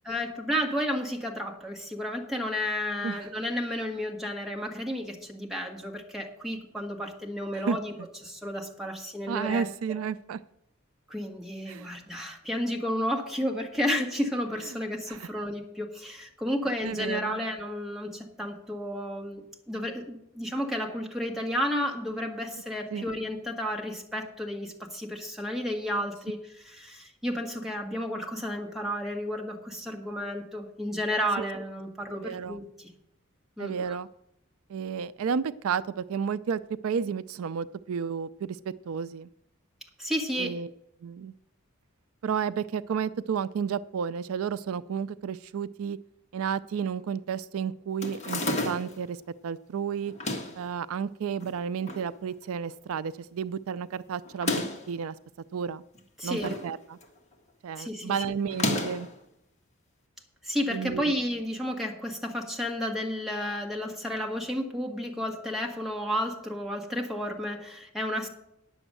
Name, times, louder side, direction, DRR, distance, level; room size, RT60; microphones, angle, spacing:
voice 1, 0.0-7.9 8.2-9.7 11.1-26.4 26.6-32.9 33.6-34.0 40.0-40.6 56.2-56.5 57.8-58.2 60.4-68.3, equal, ahead, 0 dB, 1.7 m, -32 dB
voice 2, 9.3-10.4 11.7-11.9 15.1-15.3 16.8-17.4 22.9-23.1 31.4-31.5 32.1-32.7 33.6-34.1 34.7-39.3 40.4-40.7 41.0-41.3 42.2-46.0 46.3-49.2 49.4-50.1 50.6-55.2 55.5-55.8 56.2-57.0 57.6-59.1 60.7-61.2, right 7 dB, 80° right, 16 dB, 0.4 m, -32 dB
sound 1, 48.0-49.0 50.1-50.6 51.4-52.1 52.4-52.5 52.7-52.8 54.3-54.9 55.9-56.7 57.0-57.3 58.5-59.1, left 2 dB, 35° left, 1.7 m, -31 dB
10.0 x 7.0 x 7.6 m, 0.80 s
head